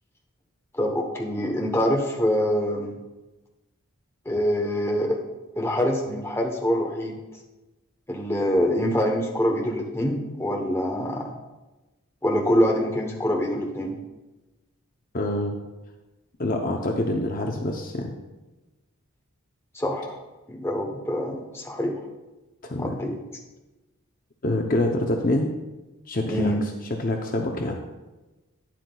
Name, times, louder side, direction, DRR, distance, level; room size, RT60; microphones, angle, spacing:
voice 1, 0.7-2.9 4.2-5.2 5.6-7.2 8.1-11.3 12.2-14.0 19.7-20.2 20.5-22.0 22.8-23.2 26.2-26.6, equal, 10° left, 1 dB, 0.9 m, -25 dB
voice 2, 15.1-15.6 16.4-18.2 22.6-23.0 24.4-25.5 26.1-26.5 27.0-27.8, left 1 dB, 40° left, 2 dB, 0.6 m, -26 dB
11.5 x 9.6 x 2.3 m, 1.1 s
head